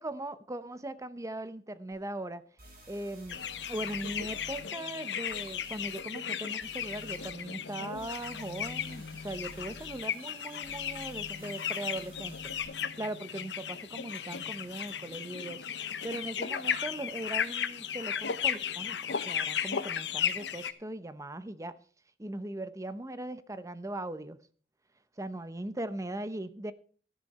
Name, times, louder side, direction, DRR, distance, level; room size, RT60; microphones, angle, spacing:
voice 1, 0.0-2.4 2.9-3.4 3.7-12.5 13.0-21.8 22.2-24.4 25.2-26.7, right 1 dB, 20° right, 0.8 m, -39 dB
sound 1, 1.9-2.0 2.6-4.6 5.3-6.0 6.6-7.3 7.9-12.6, right 1 dB, 60° right, 5.6 m, -53 dB
sound 2, 3.3-20.7, left 8 dB, 85° left, 0.9 m, -35 dB
13.5 x 10.5 x 4.2 m
head